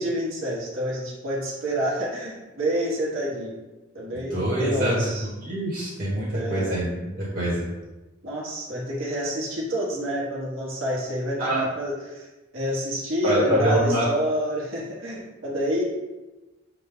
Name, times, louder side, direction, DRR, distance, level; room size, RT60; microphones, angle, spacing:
voice 1, 0.0-3.6 3.9-5.3 6.3-6.8 8.2-12.3 12.5-15.8, equal, 85° right, -4 dB, 1.2 m, -28 dB
voice 2, 4.3-5.1 5.4-7.7 11.4-11.6 13.2-14.1, right 1 dB, 50° right, -6 dB, 1.1 m, -24 dB
6.2 x 2.2 x 3.6 m, 1.1 s
head